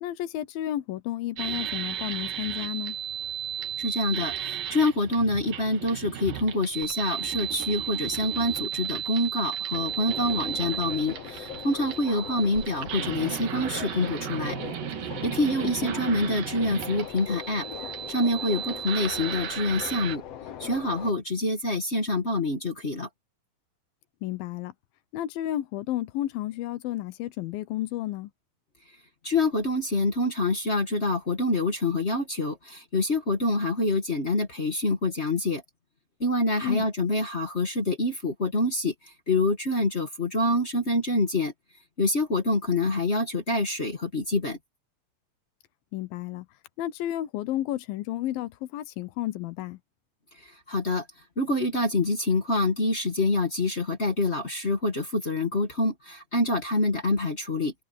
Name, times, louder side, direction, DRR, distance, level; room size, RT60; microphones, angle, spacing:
voice 1, 0.0-3.0 15.6-15.9 24.2-24.7 25.1-28.3 36.6-36.9 45.9-46.5 46.8-49.8, left 13 dB, 80° left, 2.7 m, -32 dB
sound 1, 1.4-20.2, right 9 dB, 70° right, 3.4 m, -34 dB
voice 2, 3.8-14.6 15.2-17.7 18.1-20.2 20.6-23.1 29.2-35.6 36.2-41.5 42.0-44.6 50.7-51.0 51.4-57.7, left 2 dB, 40° left, 0.9 m, -26 dB
Subway metro underground, 9.7-21.1, left 9 dB, 60° left, 1.8 m, -40 dB
open air
omnidirectional pair, 4.2 m